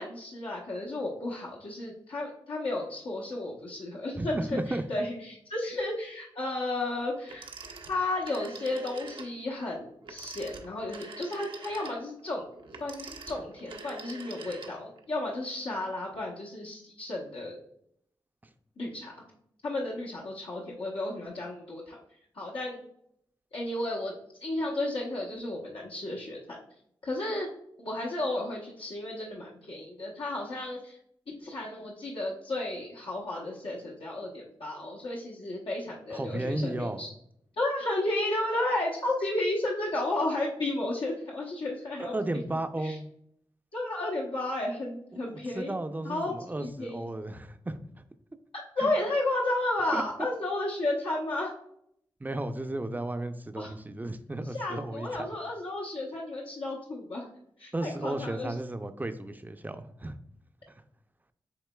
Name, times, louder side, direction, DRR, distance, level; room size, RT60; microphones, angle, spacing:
voice 1, 0.0-7.5 7.9-12.4 12.8-17.6 18.8-19.1 19.6-22.0 22.3-22.8 23.5-24.1 24.4-26.6 27.0-27.5 27.8-31.0 31.4-37.1 37.6-42.1 42.8-43.0 43.7-45.7 46.0-46.3 46.6-47.0 48.5-51.5 53.6-53.7 54.5-57.3 57.6-58.5, left 2 dB, 75° left, -5 dB, 0.9 m, -33 dB
voice 2, 4.1-4.9 36.1-37.0 42.0-43.1 45.3-47.8 48.8-48.9 49.9-50.0 52.2-55.2 57.7-60.2 60.7-60.8, right 1 dB, 20° right, 9 dB, 0.5 m, -34 dB
Telephone, 7.3-9.4 10.0-15.0, right 3 dB, 70° right, 0.6 m, -44 dB
7.8 x 2.9 x 2.2 m, 0.71 s
cardioid pair, 45°, 9 cm